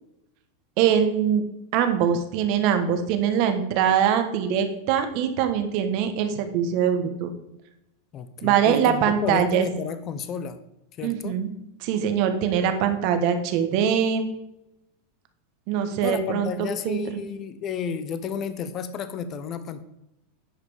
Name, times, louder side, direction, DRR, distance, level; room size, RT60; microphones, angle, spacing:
voice 1, 0.8-1.4 1.7-7.3 8.4-9.6 11.0-11.5 11.8-14.3 15.7-17.0, right 8 dB, 55° right, 7 dB, 1.4 m, -23 dB
voice 2, 8.1-10.6 11.0-11.4 16.0-19.8, left 7 dB, 40° left, 12 dB, 0.9 m, -32 dB
10.0 x 5.1 x 5.0 m, 0.87 s
hypercardioid pair, 115°, 0 cm